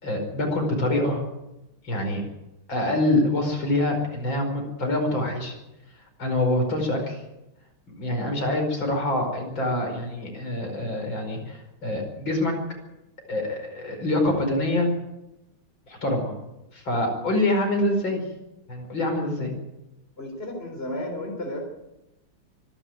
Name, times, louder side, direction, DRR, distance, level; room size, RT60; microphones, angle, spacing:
voice 1, 0.0-1.2 1.8-2.2 2.7-5.6 6.2-7.2 8.0-12.6 13.3-14.9 15.9-16.3 16.7-18.2 18.7-19.5, left 1 dB, 65° left, 3 dB, 5.8 m, -25 dB
voice 2, 20.2-21.7, left 1 dB, 25° left, 3 dB, 4.0 m, -33 dB
25.5 x 12.0 x 9.2 m, 0.95 s
omnidirectional pair, 2.3 m